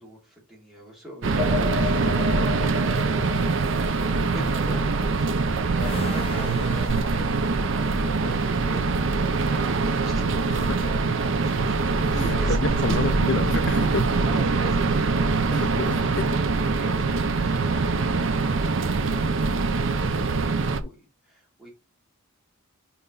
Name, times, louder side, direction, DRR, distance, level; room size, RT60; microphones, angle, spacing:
voice 1, 0.0-5.3 5.7-13.4 14.3-15.9 16.4-21.7, equal, ahead, 2.8 m, -42 dB
sound 1, 1.2-20.8, right 3 dB, 55° right, 0.5 m, -23 dB
sound 2, 1.4-8.4, left 5 dB, 40° right, 2.2 m, -36 dB
sound 3, 5.7-8.9 11.9-13.3, left 3 dB, 25° left, 0.8 m, -43 dB
voice 2, 10.5-10.8 12.1-14.2 15.5-16.4 20.8-20.9, left 4 dB, 50° left, 0.5 m, -30 dB
5.7 x 4.5 x 3.9 m
head